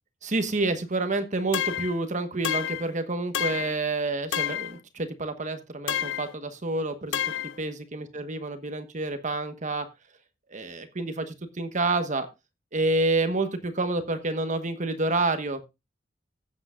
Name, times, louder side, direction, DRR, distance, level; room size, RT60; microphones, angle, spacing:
voice 1, 0.2-7.2 7.6-9.9 10.5-12.3 12.7-15.6, right 2 dB, 40° right, 8 dB, 1.2 m, -28 dB
sound 1, 1.5-2.0 2.4-2.9 3.3-3.8 4.3-4.8 5.9-6.3 7.1-7.6, left 10 dB, 70° left, 0.4 m, -29 dB
16.0 x 8.0 x 2.4 m, 0.24 s
head